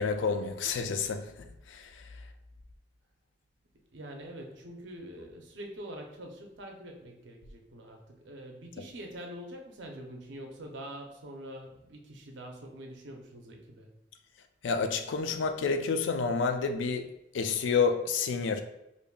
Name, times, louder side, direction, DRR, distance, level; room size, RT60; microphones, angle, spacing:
voice 1, 0.0-1.3 1.7-2.0 14.6-17.1 17.3-18.6, left 5 dB, 85° left, 0.4 m, -29 dB
voice 2, 3.9-13.9, right 1 dB, 75° right, 0.7 m, -45 dB
5.1 x 2.6 x 2.3 m
head